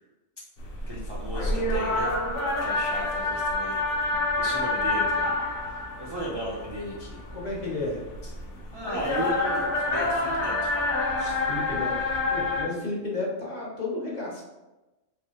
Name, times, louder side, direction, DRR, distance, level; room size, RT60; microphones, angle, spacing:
sound 1, 0.6-12.6, left 2 dB, 75° left, 1.0 m, -28 dB
voice 1, 0.9-2.1 2.6-5.3 5.7-7.2 8.7-10.8 11.2-11.4, equal, 40° right, -5 dB, 0.3 m, -35 dB
voice 2, 7.3-8.0 11.5-11.9 12.3-14.4, left 2 dB, 40° left, -4 dB, 0.8 m, -32 dB
3.4 x 3.0 x 2.8 m, 1.1 s
omnidirectional pair, 1.2 m